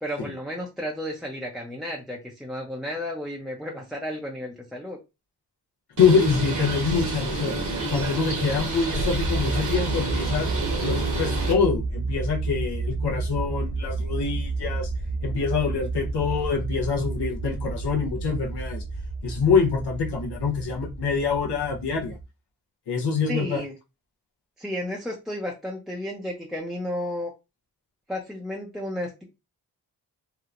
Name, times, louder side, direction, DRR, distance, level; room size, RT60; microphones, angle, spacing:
voice 1, 0.0-5.0 23.3-23.7 24.6-27.3 28.1-29.2, left 1 dB, ahead, 0.5 m, -33 dB
voice 2, 6.0-7.5 7.9-10.5 10.8-14.9 15.2-18.8 19.2-22.2 22.9-23.6, left 5 dB, 80° left, 0.8 m, -25 dB
Bird, 6.0-11.5, right 2 dB, 45° right, 0.9 m, -29 dB
sound 1, 9.1-22.2, right 3 dB, 45° left, 1.0 m, -31 dB
2.9 x 2.0 x 2.4 m
cardioid pair, 55°, 40 cm